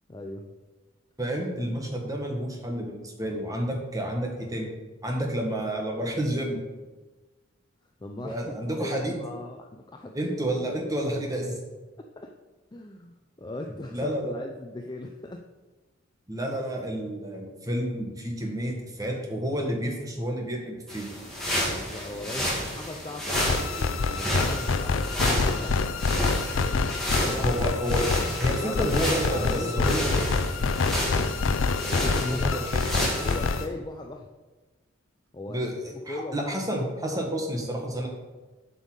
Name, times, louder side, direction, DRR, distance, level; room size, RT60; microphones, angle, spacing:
voice 1, 0.1-0.5 3.2-3.4 8.0-8.5 8.8-10.3 12.2-12.3 12.7-15.4 21.5-25.8 27.1-27.6 27.9-28.1 28.5-30.5 31.0-31.5 31.9-32.6 33.2-34.3 35.3-35.6 35.9-36.6 37.0-37.2, left 2 dB, 20° left, 3 dB, 0.5 m, -38 dB
voice 2, 1.2-4.7 5.0-6.6 8.2-9.2 10.1-11.6 13.9-14.3 16.3-21.1 27.4-28.1 28.4-30.0 32.2-32.9 35.5-38.1, right 1 dB, 15° right, 1 dB, 1.5 m, -30 dB
sound 1, 20.9-33.6, equal, ahead, 2.2 m, -31 dB
sound 2, 23.3-33.6, left 4 dB, 70° left, 0.5 m, -27 dB
7.7 x 5.4 x 6.4 m, 1.2 s
head